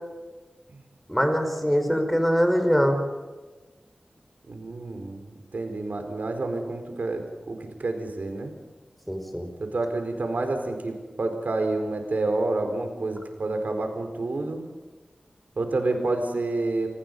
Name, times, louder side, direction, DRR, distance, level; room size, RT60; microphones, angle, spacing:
voice 1, 1.1-3.0 9.1-9.5, equal, ahead, 5 dB, 4.8 m, -23 dB
voice 2, 4.5-8.5 9.6-14.6 15.6-16.9, right 2 dB, 75° right, 5 dB, 4.3 m, -29 dB
29.0 x 19.5 x 5.4 m, 1.3 s
wide cardioid pair, 75°, 3 cm